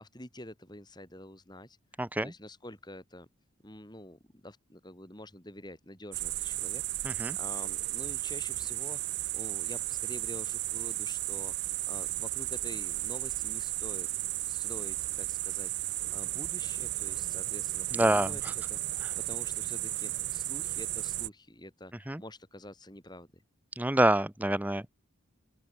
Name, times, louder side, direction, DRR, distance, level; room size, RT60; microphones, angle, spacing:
voice 1, 0.0-1.8 2.2-3.3 3.6-14.1 14.5-23.4, left 1 dB, 20° left, 5.6 m, -47 dB
voice 2, 2.0-2.3 7.0-7.4 17.9-18.3 19.0-19.1 22.1-22.2 23.8-24.9, right 1 dB, 10° right, 0.8 m, -27 dB
sound 1, 6.1-21.3, right 17 dB, 55° right, 0.5 m, -34 dB
open air
head